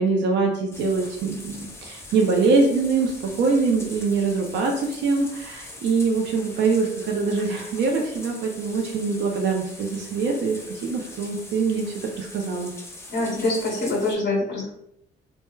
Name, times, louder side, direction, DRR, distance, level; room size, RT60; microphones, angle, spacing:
voice 1, 0.0-3.1 3.4-11.9 12.1-12.7, right 4 dB, 65° right, 1 dB, 0.5 m, -23 dB
sound 1, 0.7-14.2, left 2 dB, 15° left, 0.5 m, -42 dB
voice 2, 13.1-14.7, left 2 dB, 65° left, -5 dB, 0.9 m, -24 dB
3.1 x 2.1 x 2.2 m, 0.77 s
cardioid pair, 90°, 20 cm